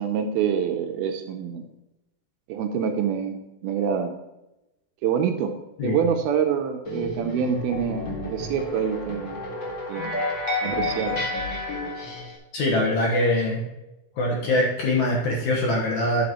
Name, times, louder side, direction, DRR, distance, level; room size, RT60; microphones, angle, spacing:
voice 1, 0.0-1.6 2.5-4.1 5.0-5.5 5.8-9.4 9.9-10.1 10.6-11.2, right 7 dB, 80° right, 5 dB, 2.5 m, -26 dB
sound 1, 6.9-12.4, left 2 dB, 45° left, 1.7 m, -30 dB
voice 2, 12.5-13.6 14.2-16.2, left 1 dB, 60° left, -2 dB, 2.2 m, -23 dB
11.5 x 8.6 x 3.0 m, 0.95 s
omnidirectional pair, 4.7 m